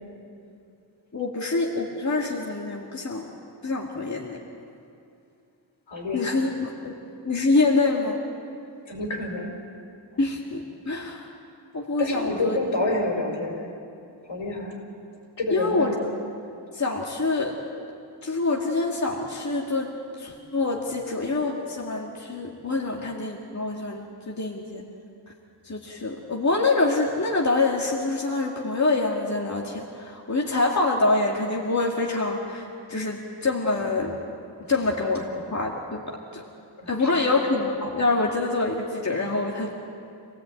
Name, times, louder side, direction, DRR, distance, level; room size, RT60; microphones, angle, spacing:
voice 1, 1.1-3.3 3.6-4.4 6.1-7.0 7.2-8.2 10.2-11.3 11.7-12.6 15.5-15.9 16.7-17.6 18.2-19.9 20.2-24.8 25.7-34.2 34.7-36.4 36.9-39.7, left 3 dB, 35° left, -1 dB, 2.1 m, -26 dB
voice 2, 5.9-6.4 8.9-9.5 12.0-13.7 14.2-14.8 15.4-16.0 36.8-37.2, left 2 dB, 75° left, 1 dB, 5.5 m, -28 dB
26.5 x 18.0 x 9.0 m, 2.6 s
wide cardioid pair, 130°, 47 cm